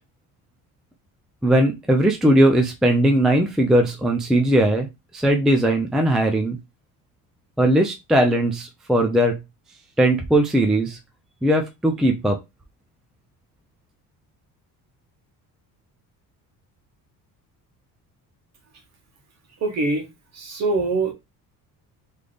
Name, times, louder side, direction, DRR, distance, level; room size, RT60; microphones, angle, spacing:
voice 1, 1.4-4.9 5.1-6.6 7.6-9.4 10.0-11.0 11.4-12.4, right 1 dB, ahead, 0.3 m, -19 dB
voice 2, 19.6-20.0 20.3-21.1, right 3 dB, 50° right, 1.4 m, -23 dB
3.9 x 3.2 x 3.3 m
cardioid pair, 170°, 35 cm